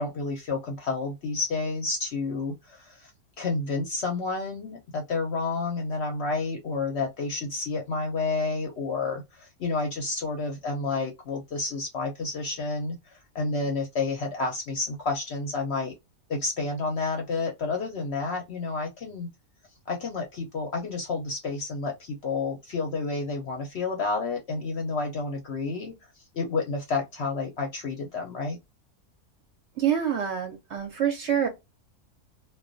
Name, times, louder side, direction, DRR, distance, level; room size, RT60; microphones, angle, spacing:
voice 1, 0.0-3.1 3.4-15.9 16.3-19.3 19.9-26.0 26.3-28.6, left 3 dB, 60° left, 0.7 m, -30 dB
voice 2, 29.8-31.5, right 9 dB, 65° right, 0.8 m, -26 dB
2.3 x 2.2 x 2.4 m
omnidirectional pair, 1.5 m